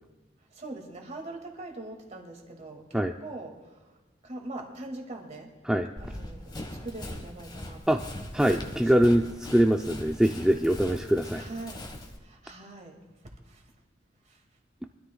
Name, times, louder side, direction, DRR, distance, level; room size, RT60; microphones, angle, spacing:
voice 1, 0.5-4.0 4.2-5.6 6.0-8.0 8.5-9.2 11.3-11.9 12.2-13.1 13.5-13.7 14.3-14.4, right 2 dB, 40° right, 2 dB, 2.1 m, -42 dB
Run, 6.0-12.2, left 1 dB, 25° left, 1.3 m, -41 dB
voice 2, 8.3-11.4, equal, 5° right, 4 dB, 0.4 m, -23 dB
24.0 x 13.0 x 2.3 m, 1.2 s
head